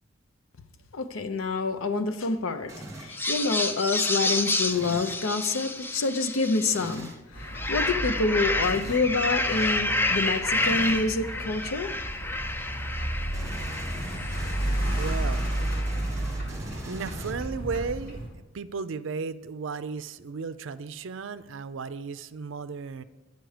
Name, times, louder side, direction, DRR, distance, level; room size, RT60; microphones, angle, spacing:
voice 1, 0.9-11.9, left 3 dB, 90° left, 9 dB, 0.6 m, -27 dB
sound 1, 2.7-3.2 4.7-5.2 6.7-7.2 8.6-9.1 10.6-11.1 13.3-17.7, right 1 dB, 15° right, 1.1 m, -41 dB
sound 2, 3.1-7.0 7.4-16.1, left 2 dB, 10° left, 0.3 m, -30 dB
sound 3, 7.3-18.3, right 1 dB, 45° left, 2.6 m, -32 dB
voice 2, 14.9-15.6 16.9-23.0, right 5 dB, 65° right, 13 dB, 0.4 m, -35 dB
9.2 x 6.7 x 4.9 m, 1.2 s
head